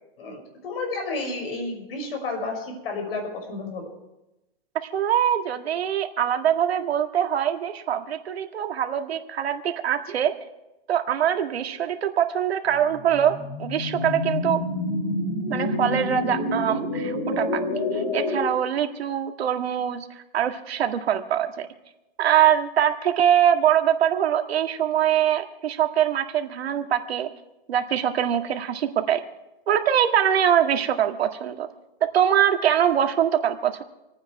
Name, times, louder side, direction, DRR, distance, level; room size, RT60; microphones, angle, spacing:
voice 1, 0.2-3.9, left 3 dB, 70° left, 3 dB, 6.0 m, -31 dB
voice 2, 4.9-10.4 10.9-14.6 15.5-20.1 20.3-21.7 22.2-27.3 27.7-29.2 29.7-31.7 32.1-33.8, right 9 dB, 85° right, 5 dB, 1.9 m, -23 dB
sound 1, 12.9-18.4, left 2 dB, 90° left, 7.0 m, -28 dB
28.0 x 9.5 x 4.7 m, 0.96 s
hypercardioid pair, 165°, 31 cm